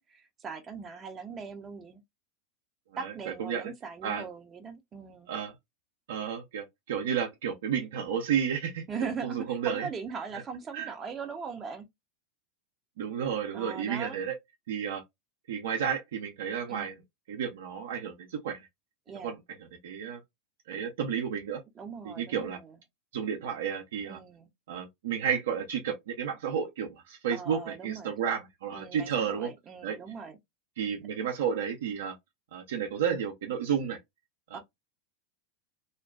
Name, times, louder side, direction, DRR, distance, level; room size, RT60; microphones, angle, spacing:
voice 1, 0.0-2.0 3.0-5.3 8.9-11.9 13.5-14.2 16.7-17.0 19.1-19.3 21.8-22.8 24.0-24.5 27.3-28.1 28.7-30.4 34.5-34.6, right 5 dB, 30° right, 0.6 m, -40 dB
voice 2, 3.4-3.7 4.0-4.2 5.3-5.5 6.1-9.9 10.7-10.9 13.0-14.3 14.7-15.0 15.5-17.0 17.3-18.7 19.2-19.4 19.8-20.2 20.7-21.6 22.0-22.6 23.1-24.2 24.7-29.5 29.8-30.0 30.8-32.1 32.5-34.0 34.5-34.6, right 7 dB, 75° right, 0.6 m, -32 dB
2.5 x 2.2 x 2.3 m
hypercardioid pair, 95°, 0 cm